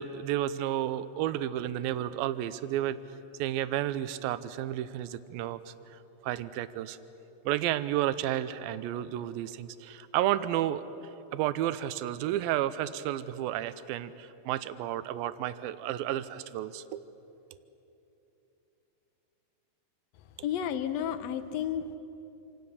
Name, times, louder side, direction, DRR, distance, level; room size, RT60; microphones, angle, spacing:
voice 1, 0.0-3.0 3.4-7.0 7.5-10.9 11.3-17.0, right 12 dB, 90° right, 13 dB, 2.5 m, -32 dB
voice 2, 20.4-22.0, left 9 dB, 65° left, 11 dB, 1.7 m, -32 dB
27.0 x 26.5 x 7.1 m, 3.0 s
omnidirectional pair, 4.1 m